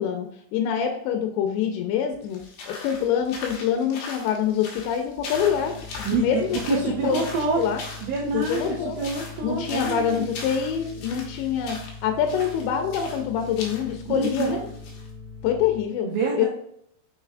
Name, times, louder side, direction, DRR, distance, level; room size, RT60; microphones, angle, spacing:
voice 1, 0.0-7.2 7.6-7.8 8.3-9.0 9.4-14.6 15.4-16.1 16.4-16.5, left 8 dB, 85° left, 4 dB, 2.8 m, -25 dB
sound 1, 2.3-15.1, left 3 dB, 70° left, 2.5 m, -40 dB
sound 2, 5.3-15.8, left 4 dB, 20° right, 1.2 m, -41 dB
voice 2, 6.7-7.6 8.0-10.3 14.1-14.6 16.0-16.5, right 4 dB, 75° right, -2 dB, 2.2 m, -27 dB
6.7 x 6.4 x 2.4 m, 0.70 s
omnidirectional pair, 5.3 m